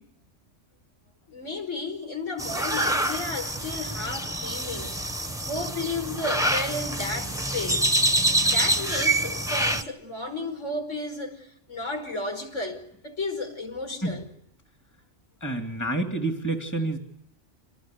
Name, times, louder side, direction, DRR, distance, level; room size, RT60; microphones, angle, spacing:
voice 1, 1.3-4.9 5.4-7.9 8.4-14.3, left 2 dB, 75° left, 5.5 m, -33 dB
sound 1, 2.4-9.8, right 1 dB, 5° right, 1.2 m, -26 dB
voice 2, 15.4-17.0, right 2 dB, 15° left, 2.7 m, -28 dB
27.5 x 19.5 x 8.4 m
omnidirectional pair, 1.3 m